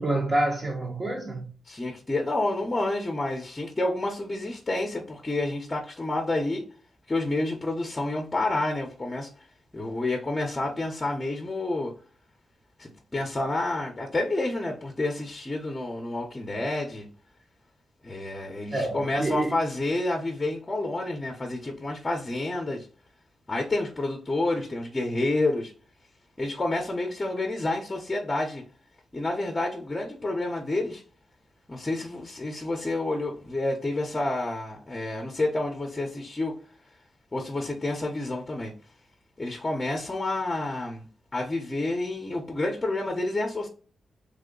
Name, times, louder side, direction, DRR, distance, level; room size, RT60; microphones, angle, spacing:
voice 1, 0.0-1.5 18.7-19.6, right 2 dB, 30° right, 0.8 m, -27 dB
voice 2, 1.7-6.7 7.1-9.3 9.7-11.9 12.8-17.1 18.0-22.9 23.5-25.7 26.4-28.6 29.1-31.0 31.7-36.5 37.3-38.7 39.4-41.1 41.3-43.7, left 2 dB, 20° left, 0.7 m, -29 dB
3.5 x 2.1 x 3.7 m
cardioid pair, 95°, 0 cm